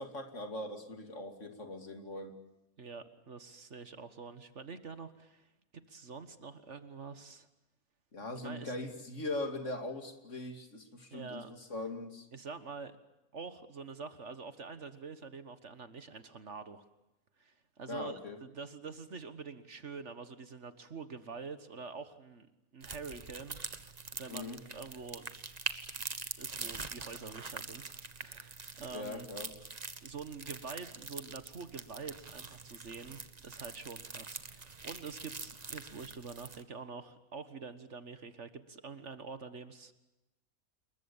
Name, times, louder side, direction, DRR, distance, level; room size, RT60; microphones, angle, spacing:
voice 1, 0.0-2.4 8.1-12.3 17.9-18.4 24.3-24.6 28.9-29.5, left 2 dB, 55° left, 6 dB, 3.0 m, -40 dB
voice 2, 2.8-5.5 5.9-7.5 8.4-8.7 11.1-11.5 12.3-13.0 13.3-16.8 17.4-22.5 22.7-23.6 24.2-25.3 25.7-25.8 26.4-29.3 30.0-39.9, right 4 dB, 55° right, 11 dB, 1.7 m, -46 dB
sound 1, 22.8-36.6, right 4 dB, 30° right, 1.3 m, -44 dB
28.0 x 22.5 x 7.2 m, 0.94 s
omnidirectional pair, 1.5 m